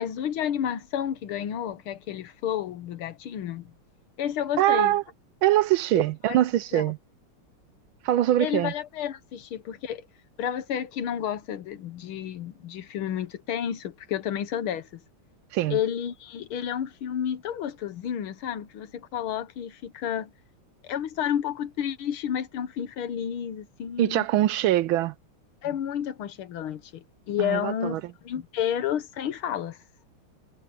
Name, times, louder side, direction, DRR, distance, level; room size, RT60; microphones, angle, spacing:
voice 1, 0.0-3.7 4.2-4.9 6.0-6.4 6.7-6.8 8.4-10.0 10.4-15.0 15.7-20.3 20.8-24.3 25.6-28.0 28.2-29.8, left 9 dB, 75° left, 1.9 m, -31 dB
voice 2, 4.6-5.0 5.4-7.0 8.0-8.7 15.5-15.8 24.0-25.1 27.4-28.0, right 13 dB, 75° right, 1.3 m, -23 dB
omnidirectional pair, 2.4 m